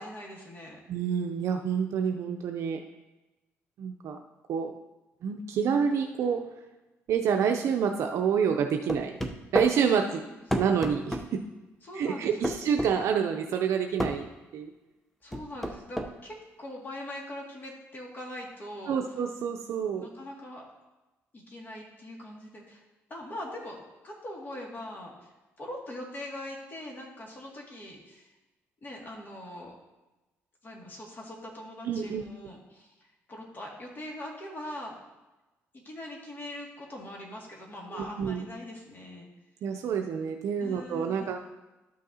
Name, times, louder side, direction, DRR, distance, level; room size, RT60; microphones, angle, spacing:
voice 1, 0.0-0.8 10.2-10.4 11.8-12.6 15.2-19.0 20.0-20.6 21.3-22.8 23.1-25.3 25.6-28.3 28.8-29.7 30.6-34.9 35.7-39.3 40.6-41.4, left 1 dB, 35° left, -1 dB, 2.2 m, -42 dB
voice 2, 0.9-2.8 3.8-4.2 4.5-4.7 5.2-6.4 7.1-9.2 9.5-10.2 10.5-11.4 11.9-14.3 14.5-14.7 18.9-20.1 31.8-32.2 37.9-38.5 39.6-41.4, right 7 dB, 70° right, 4 dB, 0.5 m, -28 dB
sound 1, 8.9-9.7 10.5-11.3 12.4-12.9 14.0-14.2 15.3-16.1, equal, 5° left, 0.7 m, -29 dB
12.5 x 6.3 x 2.8 m, 1.1 s
cardioid pair, 100°, 5 cm